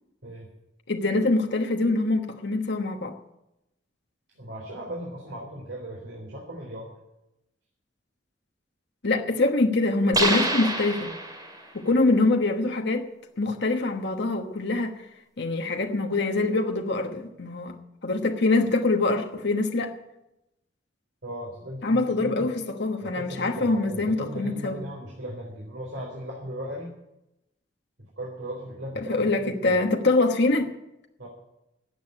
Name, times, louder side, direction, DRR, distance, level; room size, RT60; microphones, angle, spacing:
voice 1, 0.9-3.1 9.0-11.1 11.7-13.0 13.4-15.0 15.4-17.7 18.0-20.0 21.8-24.8 29.1-30.7, left 2 dB, 60° left, 1.2 m, -24 dB
voice 2, 4.4-6.9 21.2-22.5 23.0-26.9 28.2-29.5 31.2-31.3, equal, 70° right, 3.8 m, -37 dB
sound 1, 10.1-11.7, right 2 dB, 20° right, 2.5 m, -26 dB
13.5 x 8.1 x 9.7 m
head